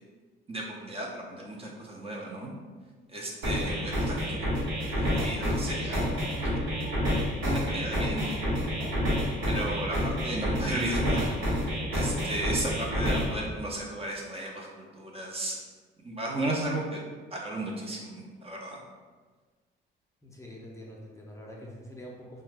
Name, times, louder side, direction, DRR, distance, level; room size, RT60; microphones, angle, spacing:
voice 1, 0.5-2.5 3.1-4.4 4.9-6.0 6.4-7.0 7.4-8.8 9.5-11.6 11.9-15.6 16.0-17.0 17.3-18.0 18.4-18.8, right 1 dB, 30° right, -2 dB, 0.6 m, -34 dB
sound 1, 3.4-13.4, equal, 90° right, 1.0 m, -29 dB
voice 2, 20.2-22.4, equal, 15° left, -3 dB, 0.6 m, -45 dB
2.7 x 2.2 x 3.3 m, 1.4 s
cardioid pair, 90°, 20 cm